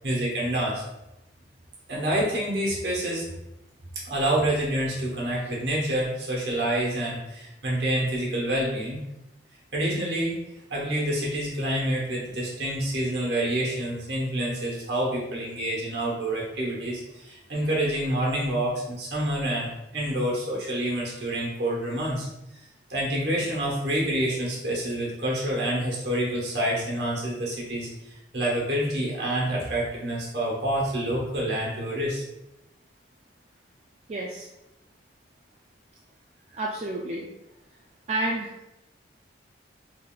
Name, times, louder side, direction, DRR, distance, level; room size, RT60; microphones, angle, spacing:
voice 1, 0.0-0.8 1.9-3.3 4.1-9.0 9.7-10.4 10.7-22.3 22.9-27.9 28.3-32.2, right 1 dB, 65° right, -3 dB, 1.1 m, -27 dB
voice 2, 34.1-34.5 36.6-37.3 38.1-38.5, right 2 dB, 35° right, -2 dB, 0.3 m, -29 dB
3.8 x 3.3 x 2.4 m, 0.92 s
head